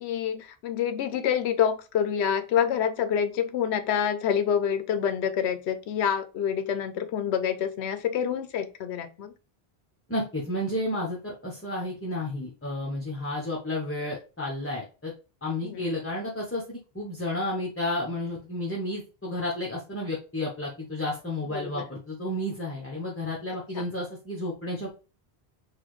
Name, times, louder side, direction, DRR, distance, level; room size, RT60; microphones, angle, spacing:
voice 1, 0.0-9.3 15.6-15.9 21.5-21.8 23.8-23.9, left 8 dB, 90° left, 10 dB, 0.9 m, -27 dB
voice 2, 10.1-15.1 15.4-24.9, left 1 dB, 15° left, -3 dB, 0.8 m, -32 dB
4.1 x 2.6 x 3.0 m, 0.32 s
omnidirectional pair, 1.1 m